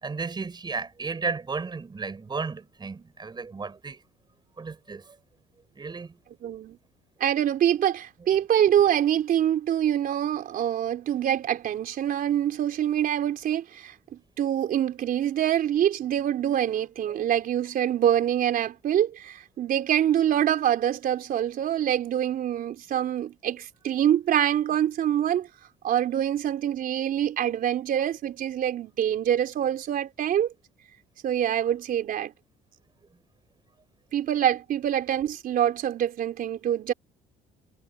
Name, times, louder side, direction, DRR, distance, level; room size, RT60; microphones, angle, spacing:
voice 1, 0.0-4.0 4.6-5.0 5.8-6.2, right 4 dB, 25° right, 4.7 m, -33 dB
voice 2, 6.4-6.8 7.2-13.9 14.4-25.5 25.8-30.5 31.2-32.3 34.1-36.9, right 10 dB, 60° right, 3.9 m, -25 dB
cardioid pair, 110°, 17 cm